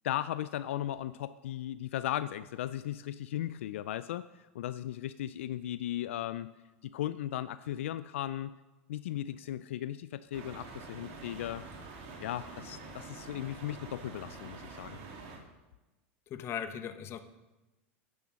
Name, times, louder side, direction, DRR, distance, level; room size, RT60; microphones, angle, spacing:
voice 1, 0.0-6.5 6.8-8.5 8.9-11.6 12.2-15.0, left 12 dB, 85° left, 14 dB, 0.3 m, -37 dB
sound 1, 10.3-15.4, right 3 dB, 60° right, 2.7 m, -46 dB
voice 2, 16.3-17.2, left 8 dB, 40° left, 10 dB, 0.9 m, -38 dB
10.0 x 7.0 x 6.2 m, 1.1 s
hypercardioid pair, 110°, 7 cm